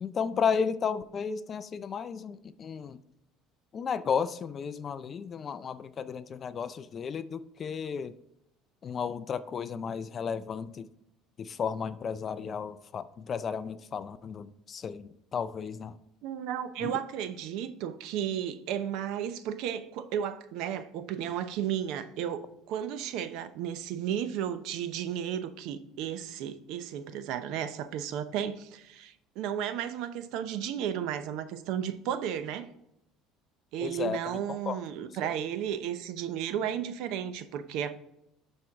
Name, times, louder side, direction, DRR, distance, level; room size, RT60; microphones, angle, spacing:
voice 1, 0.0-3.0 3.7-8.1 8.8-10.9 11.4-15.9 16.8-16.9 33.8-34.2 34.5-34.8 35.2-35.3, left 6 dB, 30° left, 14 dB, 0.4 m, -33 dB
voice 2, 16.2-32.7 33.7-37.9, right 9 dB, 70° right, 11 dB, 0.7 m, -34 dB
11.5 x 4.4 x 3.6 m, 0.82 s
cardioid pair, 145°, 0 cm